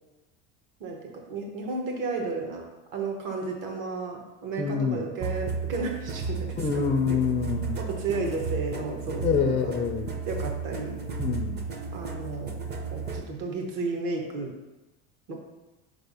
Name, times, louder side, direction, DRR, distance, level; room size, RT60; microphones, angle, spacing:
voice 1, 0.8-2.7 2.9-7.2 7.8-9.7 10.3-11.0 11.9-12.6 12.9-14.5 15.3-15.4, right 3 dB, 60° right, 1 dB, 1.3 m, -33 dB
voice 2, 4.6-5.0 6.6-7.7 9.2-10.1 11.2-11.6, left 6 dB, 25° left, 3 dB, 0.3 m, -26 dB
sound 1, 5.2-13.3, right 5 dB, 30° right, 0.6 m, -33 dB
5.0 x 3.4 x 5.5 m, 1.1 s
cardioid pair, 135°, 36 cm